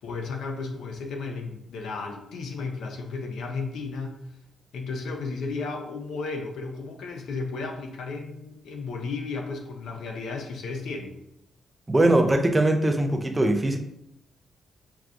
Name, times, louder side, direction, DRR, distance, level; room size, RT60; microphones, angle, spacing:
voice 1, 0.0-4.2 4.7-11.2, left 4 dB, 75° left, 3 dB, 0.6 m, -34 dB
voice 2, 11.9-13.8, right 1 dB, 15° right, 4 dB, 0.3 m, -21 dB
5.7 x 2.3 x 2.5 m, 0.81 s
wide cardioid pair, 155°, 0 cm